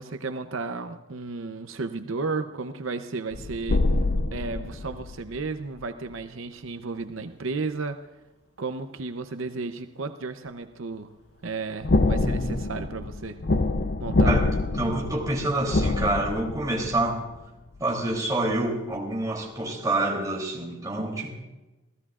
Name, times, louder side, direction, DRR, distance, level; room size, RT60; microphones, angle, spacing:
voice 1, 0.0-3.9 4.3-8.0 8.6-11.1 11.4-13.4 14.0-14.4, right 4 dB, 85° right, 8 dB, 0.7 m, -33 dB
sound 1, 3.3-5.9 11.8-17.4 17.8-17.9, left 2 dB, 55° left, 0.6 m, -26 dB
voice 2, 14.8-17.2 17.8-21.3, right 2 dB, 20° right, -2 dB, 3.1 m, -27 dB
28.0 x 15.5 x 2.5 m, 1.1 s
head